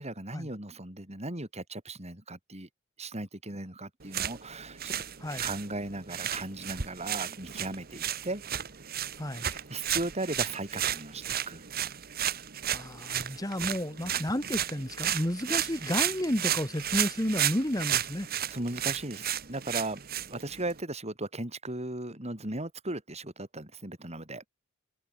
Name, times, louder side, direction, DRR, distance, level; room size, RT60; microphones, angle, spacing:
voice 1, 0.0-2.7 3.0-4.9 5.4-8.4 9.5-11.7 14.0-14.2 18.5-20.0 20.3-24.4, right 2 dB, 30° right, 6.3 m, -37 dB
sound 1, 4.0-20.8, right 10 dB, 50° right, 1.3 m, -33 dB
voice 2, 9.2-9.5 12.7-18.3, left 1 dB, 20° left, 2.0 m, -32 dB
head